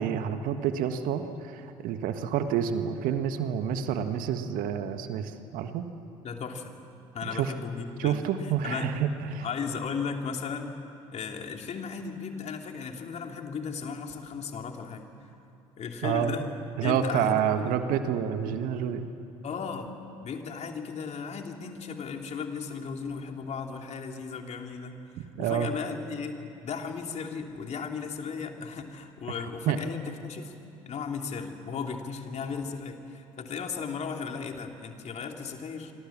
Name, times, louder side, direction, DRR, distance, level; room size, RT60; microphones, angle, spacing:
voice 1, 0.0-5.8 7.3-7.5 8.0-9.4 16.0-16.5 16.8-19.1 25.3-25.7 29.7-29.8, right 8 dB, 60° right, 8 dB, 1.7 m, -28 dB
voice 2, 6.2-6.8 7.1-8.2 8.6-8.9 9.4-10.7 11.1-15.1 15.8-16.5 16.8-17.8 19.4-19.9 20.2-30.5 30.8-35.9, left 5 dB, 45° left, 3 dB, 3.1 m, -36 dB
28.0 x 25.5 x 7.4 m, 2.7 s
hypercardioid pair, 60°, 16 cm